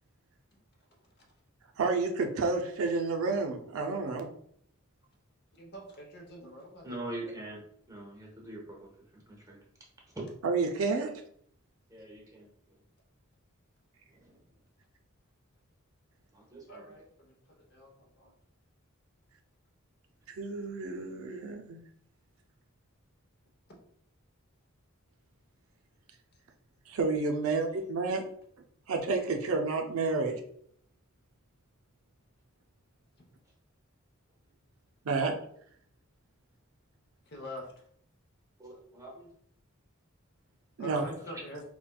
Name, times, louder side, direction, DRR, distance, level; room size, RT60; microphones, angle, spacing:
voice 1, 1.8-4.3 10.4-11.1 20.4-21.8 26.9-28.2 28.9-30.4 35.0-35.3 40.8-41.1, right 4 dB, 80° right, 4 dB, 0.5 m, -30 dB
voice 2, 5.5-7.3 16.7-18.3 27.4-27.5 37.3-37.7 40.8-41.6, equal, 50° left, 1 dB, 0.8 m, -45 dB
voice 3, 6.8-9.6 11.9-12.5 14.1-14.4 16.3-16.9 38.6-39.3, right 1 dB, 15° right, -2 dB, 0.8 m, -44 dB
4.1 x 2.2 x 2.2 m, 0.65 s
head